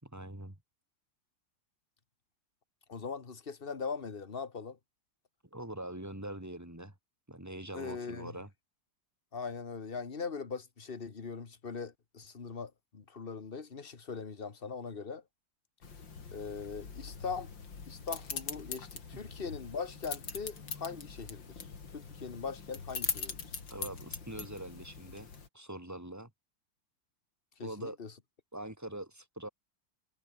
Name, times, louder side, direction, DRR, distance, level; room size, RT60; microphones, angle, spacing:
voice 1, 0.0-0.6 5.5-6.9 7.3-8.5 19.1-19.2 23.7-25.3 25.5-26.3 27.6-28.0 28.5-29.5, right 1 dB, 10° right, 3.0 m, -43 dB
voice 2, 2.9-4.8 7.7-8.3 9.3-15.2 16.3-17.5 17.8-21.7 21.9-23.5 27.6-28.1, left 5 dB, 30° left, 1.5 m, -41 dB
sound 1, 15.8-25.5, left 5 dB, 85° left, 3.6 m, -42 dB
omnidirectional pair, 2.0 m